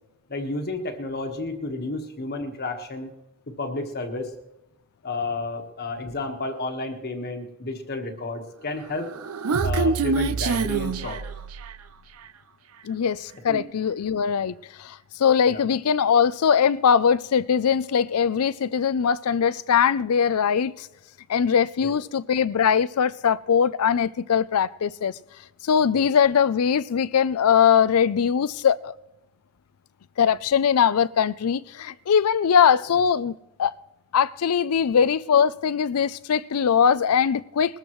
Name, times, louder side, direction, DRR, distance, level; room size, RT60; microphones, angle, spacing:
voice 1, 0.3-3.1 3.6-4.3 5.0-9.1 9.6-11.2 13.5-13.6 15.5-15.6 21.8-21.9 25.9-26.0, left 2 dB, 45° left, 1.4 m, -31 dB
Human voice, 8.9-11.9, right 4 dB, 75° right, 0.6 m, -26 dB
voice 2, 12.8-20.9 21.3-25.1 25.6-28.9 30.2-33.7 34.1-37.8, left 7 dB, 75° left, 0.4 m, -21 dB
21.0 x 14.0 x 3.1 m
head